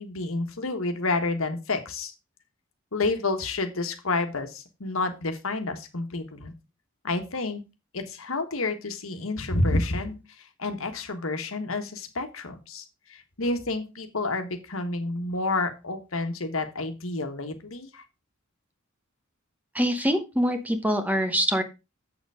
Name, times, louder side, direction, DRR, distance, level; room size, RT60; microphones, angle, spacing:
voice 1, 0.0-2.1 2.9-6.5 7.0-7.6 7.9-18.0, left 2 dB, 75° left, 7 dB, 1.5 m, -29 dB
voice 2, 19.7-21.6, equal, 10° right, 8 dB, 1.0 m, -24 dB
7.5 x 7.0 x 4.9 m, 0.27 s
head